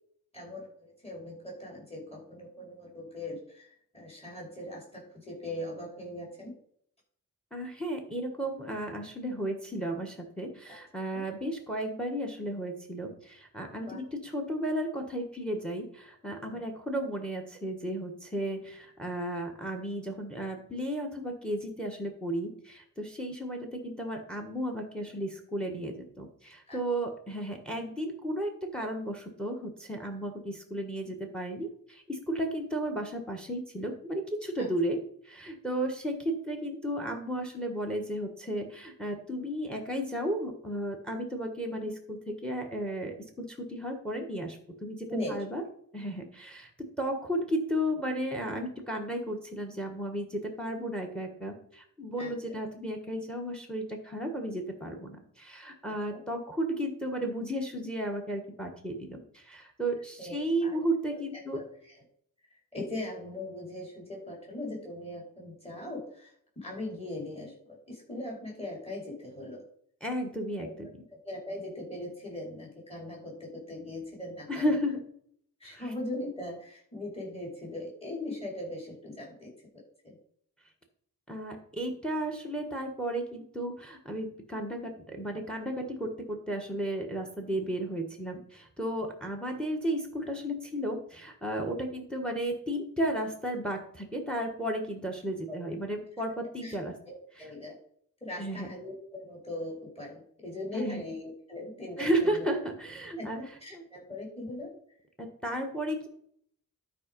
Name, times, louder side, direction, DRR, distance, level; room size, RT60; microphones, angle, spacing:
voice 1, 0.3-6.5 10.7-10.8 11.1-11.2 13.9-14.0 16.5-16.6 26.7-26.8 34.6-34.7 45.1-45.4 52.2-52.3 55.9-56.2 60.2-60.8 61.1-61.2 61.5-61.7 62.5-69.6 70.6-70.7 71.2-74.8 75.6-80.1 95.5-95.6 96.6-96.8 97.1-97.7 98.2-102.5 103.2-104.7, left 1 dB, 20° left, -3 dB, 4.6 m, -40 dB
voice 2, 7.5-35.0 35.2-45.6 45.9-61.6 70.0-70.9 74.5-75.0 75.6-75.9 81.3-96.9 97.4-97.5 98.4-98.7 100.7-101.0 102.0-103.4 103.7-103.8 105.2-106.1, right 1 dB, 5° left, 4 dB, 1.4 m, -34 dB
12.0 x 5.0 x 5.3 m, 0.65 s
wide cardioid pair, 145°, 33 cm